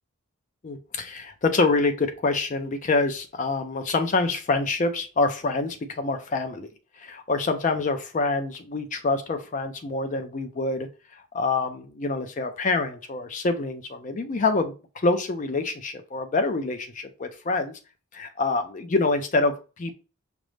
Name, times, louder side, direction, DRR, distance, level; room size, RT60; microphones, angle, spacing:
voice 1, 0.6-6.7 7.0-10.9 11.3-17.7 18.1-19.9, left 3 dB, 35° left, 8 dB, 0.4 m, -26 dB
5.1 x 2.0 x 3.1 m, 0.32 s
head